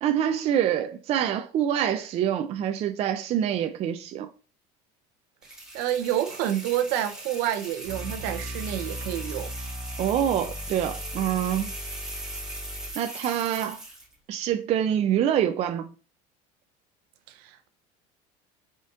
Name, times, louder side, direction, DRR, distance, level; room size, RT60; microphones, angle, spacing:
voice 1, 0.0-4.3 10.0-11.7 13.0-13.8 14.3-15.9, right 10 dB, 40° right, 0.4 m, -26 dB
sound 1, 5.4-14.1, right 1 dB, 5° right, 2.1 m, -39 dB
voice 2, 5.7-9.5 17.3-17.7, right 11 dB, 70° right, 0.8 m, -28 dB
sound 2, 7.8-12.9, equal, 20° right, 0.8 m, -38 dB
5.0 x 4.0 x 2.4 m
cardioid pair, 135°, 17 cm